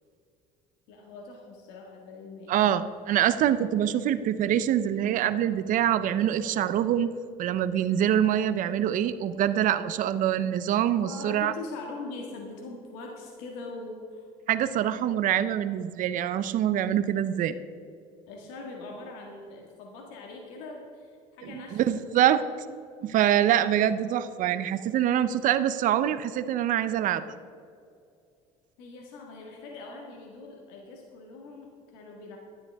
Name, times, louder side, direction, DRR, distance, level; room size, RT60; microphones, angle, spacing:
voice 1, 0.9-2.7 11.0-14.3 18.3-22.0 28.8-32.4, left 3 dB, 85° left, 0 dB, 1.8 m, -42 dB
voice 2, 2.5-7.1 7.4-11.5 14.5-17.5 21.4-22.4 23.0-27.2, right 10 dB, 60° right, 13 dB, 0.7 m, -25 dB
12.5 x 12.0 x 3.5 m, 2.4 s
supercardioid pair, 95°, 15 cm